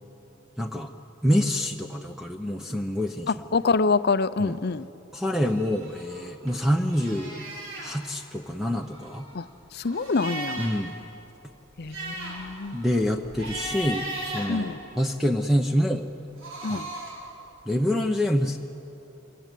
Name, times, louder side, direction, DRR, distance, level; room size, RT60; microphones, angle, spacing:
voice 1, 0.6-0.9 1.2-3.3 4.4-4.6 5.1-7.4 7.8-9.3 10.6-10.9 12.7-16.1 16.7-16.8 17.7-18.6, equal, ahead, 0.8 m, -26 dB
voice 2, 3.3-4.9 9.3-9.5 9.7-10.7 11.8-12.8 14.5-14.8 16.6-16.9, left 4 dB, 50° left, 0.6 m, -26 dB
sound 1, 5.4-6.6 6.9-7.9 8.7-10.9 11.2-11.3 11.7-15.3 16.2-17.3, right 1 dB, 75° right, 6.9 m, -37 dB
26.0 x 22.5 x 9.2 m
head